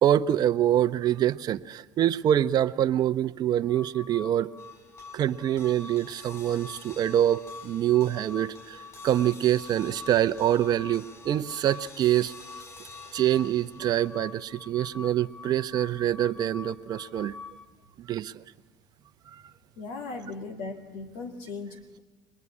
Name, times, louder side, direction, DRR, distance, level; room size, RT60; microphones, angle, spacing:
voice 1, 0.0-4.5 5.1-12.3 13.1-17.3 18.1-18.3 19.3-19.4, right 11 dB, 45° right, 12 dB, 0.8 m, -25 dB
sound 1, 3.6-17.7, left 5 dB, 10° left, 0.9 m, -46 dB
sound 2, 4.6-17.1, left 2 dB, 35° left, 6.2 m, -52 dB
voice 2, 19.8-22.0, left 3 dB, 75° left, 3 dB, 2.6 m, -38 dB
23.0 x 21.0 x 9.8 m, 1.3 s
supercardioid pair, 95°, 9 cm